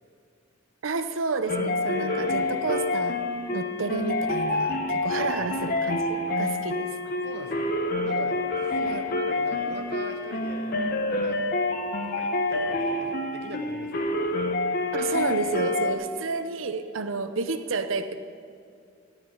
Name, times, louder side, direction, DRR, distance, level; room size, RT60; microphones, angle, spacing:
voice 1, 0.8-3.2 3.5-6.9 8.8-9.0 14.9-18.2, right 4 dB, 90° right, 9 dB, 0.7 m, -30 dB
sound 1, 1.5-15.9, left 2 dB, 50° left, 0.9 m, -27 dB
voice 2, 1.9-2.5 5.1-5.4 7.0-7.7 8.0-8.4 8.7-10.8 11.2-11.4 12.0-14.1, right 1 dB, 55° right, 4 dB, 1.3 m, -39 dB
14.5 x 5.0 x 9.1 m, 2.4 s
head